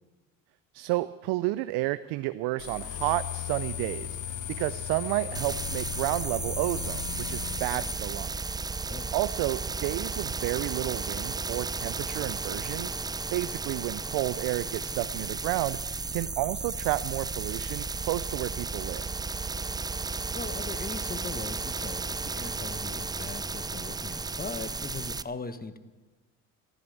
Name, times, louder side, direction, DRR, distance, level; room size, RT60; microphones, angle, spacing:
voice 1, 0.7-8.6 9.1-13.0 13.3-15.8 16.1-19.1, right 18 dB, 75° right, 14 dB, 0.6 m, -31 dB
sound 1, 2.6-7.9, left 10 dB, 50° left, 1.5 m, -36 dB
sound 2, 5.3-25.2, right 4 dB, 10° right, 0.4 m, -34 dB
voice 2, 20.3-25.8, left 4 dB, 20° left, 12 dB, 1.3 m, -40 dB
14.0 x 12.5 x 7.2 m, 1.2 s
supercardioid pair, 70°, 40 cm